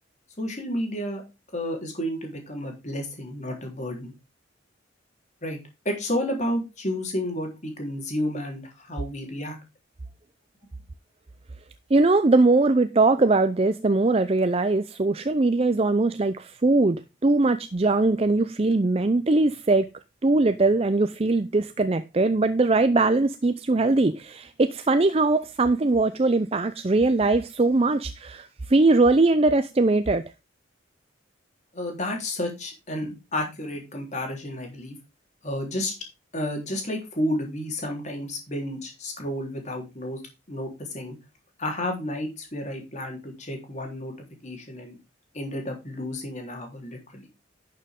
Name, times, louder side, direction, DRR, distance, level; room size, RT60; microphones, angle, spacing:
voice 1, 0.4-1.2 1.5-4.1 5.4-5.6 5.9-9.6 31.7-35.0 35.4-35.9 36.3-40.2 40.5-41.2 41.6-44.2 44.4-45.0 45.3-47.2, left 1 dB, 35° left, 3.7 m, -31 dB
voice 2, 11.9-19.9 20.2-30.2, right 2 dB, 30° right, 0.5 m, -21 dB
11.5 x 6.7 x 3.7 m
head